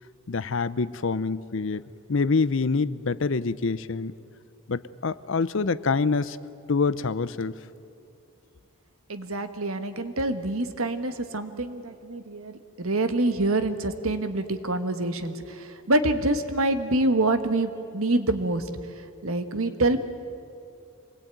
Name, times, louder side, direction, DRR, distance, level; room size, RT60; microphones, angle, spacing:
voice 1, 0.3-1.8 2.1-4.1 4.7-6.4 6.7-7.5, left 4 dB, 60° left, 17 dB, 0.6 m, -26 dB
voice 2, 9.1-18.7 19.2-20.0, right 2 dB, 75° right, 9 dB, 1.6 m, -26 dB
25.5 x 20.5 x 9.1 m, 2.6 s
head